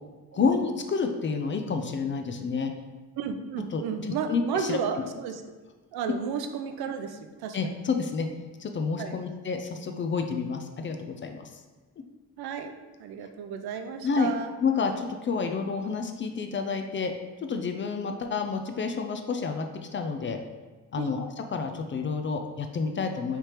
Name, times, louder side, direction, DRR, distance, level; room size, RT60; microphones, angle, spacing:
voice 1, 0.3-2.7 3.7-4.8 7.5-8.3 8.6-11.5 14.0-14.3 14.6-17.1 17.4-19.7 19.9-20.4 20.9-23.4, left 5 dB, 30° left, 5 dB, 0.4 m, -29 dB
voice 2, 3.2-5.4 5.9-7.7 9.0-9.2 12.4-12.7 13.0-14.5 21.0-21.1, right 6 dB, 75° right, 7 dB, 0.5 m, -33 dB
4.7 x 3.3 x 2.9 m, 1.3 s
cardioid pair, 95°, 38 cm